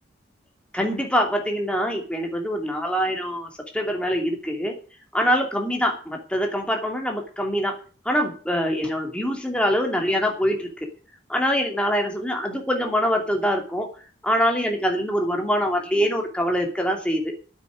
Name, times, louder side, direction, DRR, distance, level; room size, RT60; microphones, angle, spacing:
voice 1, 0.7-4.7 5.1-7.7 8.0-10.9 11.3-13.9 14.2-17.2, equal, 5° left, 2 dB, 2.6 m, -24 dB
9.2 x 8.6 x 9.6 m, 0.40 s
head